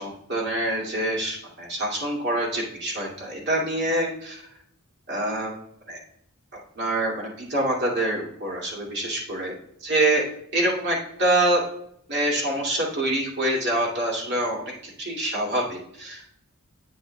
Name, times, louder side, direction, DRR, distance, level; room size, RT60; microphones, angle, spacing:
voice 1, 0.0-4.4 5.1-5.5 5.9-6.0 6.8-9.5 9.8-10.2 10.5-11.6 12.1-16.3, right 1 dB, 50° right, -4 dB, 2.5 m, -26 dB
8.5 x 8.1 x 2.3 m, 0.72 s
head